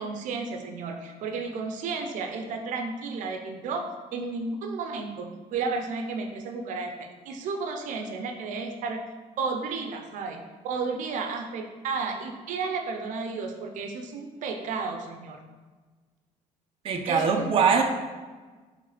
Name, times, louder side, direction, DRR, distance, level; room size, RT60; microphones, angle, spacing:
voice 1, 0.0-9.0 9.4-15.4 17.1-17.8, right 4 dB, 75° right, 5 dB, 0.7 m, -33 dB
voice 2, 16.8-17.8, right 6 dB, 45° right, 3 dB, 0.7 m, -22 dB
6.6 x 3.3 x 5.0 m, 1.4 s
cardioid pair, 135°, 13 cm